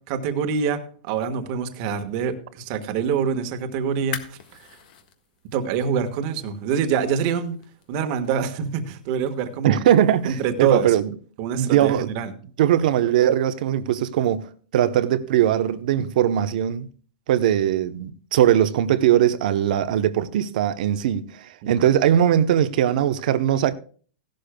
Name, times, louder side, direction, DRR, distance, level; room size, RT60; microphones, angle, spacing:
voice 1, 0.1-4.4 5.5-7.6 7.9-9.8 10.2-10.9 11.4-12.3, right 7 dB, 45° right, 1.4 m, -25 dB
sound 1, 3.9-10.7, left 9 dB, 60° left, 1.6 m, -44 dB
voice 2, 9.6-11.1 11.6-12.1 12.6-16.9 17.3-23.8, right 11 dB, 60° right, 0.8 m, -20 dB
16.5 x 11.5 x 2.2 m
supercardioid pair, 150°, 5 cm